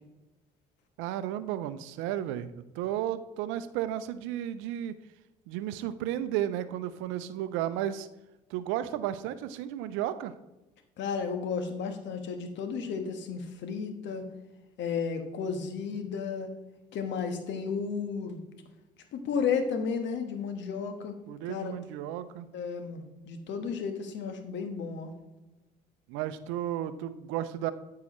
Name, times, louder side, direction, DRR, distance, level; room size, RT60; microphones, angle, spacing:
voice 1, 1.0-4.9 5.5-8.1 8.5-10.3 21.3-22.5 26.1-27.7, right 12 dB, 70° right, 13 dB, 0.6 m, -33 dB
voice 2, 11.0-14.2 14.8-16.5 16.9-18.4 19.1-21.2 21.5-21.7 22.5-25.1, left 6 dB, 65° left, 7 dB, 1.4 m, -33 dB
13.5 x 4.8 x 3.1 m, 1.0 s
hypercardioid pair, 55°, 21 cm